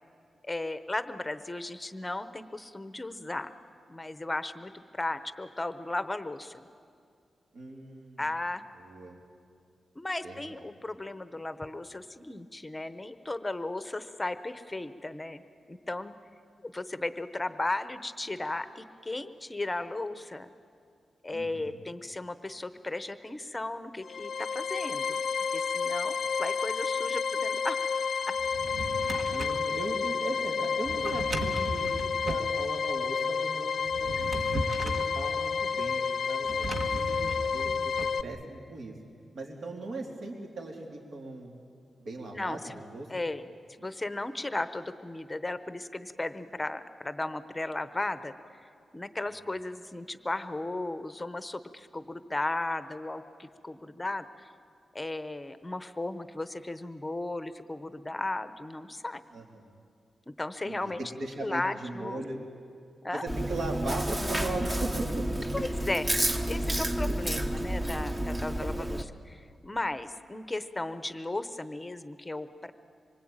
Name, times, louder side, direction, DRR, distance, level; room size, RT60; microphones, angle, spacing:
voice 1, 0.4-3.5 3.9-6.6 8.2-8.6 10.0-15.4 15.7-16.1 16.6-20.5 21.2-25.2 25.5-27.8 42.3-42.8 43.1-43.5 43.8-48.6 48.9-54.5 54.9-59.2 60.4-61.0 61.4-62.2 63.0-63.2 65.5-66.1 66.4-69.0 69.3-72.7, left 2 dB, 15° left, 11 dB, 0.9 m, -35 dB
voice 2, 7.5-8.2 8.8-9.2 10.2-10.6 21.3-21.8 29.3-31.9 32.3-34.3 34.8-37.9 38.2-38.9 39.3-41.6 42.0-43.1 59.3-59.7 60.6-62.4 63.1-65.6 67.0-67.2 68.6-68.9, right 2 dB, 65° right, 0 dB, 3.5 m, -39 dB
sound 1, 24.0-38.2, left 5 dB, 65° left, 0.5 m, -30 dB
Drawer open or close, 28.4-29.7 30.8-32.5 33.8-35.1 36.4-38.1, right 1 dB, 45° right, 1.6 m, -36 dB
Chewing mastication, 63.3-69.0, right 1 dB, 15° right, 1.0 m, -30 dB
25.5 x 23.5 x 8.9 m, 2.3 s
wide cardioid pair, 170°, 0 cm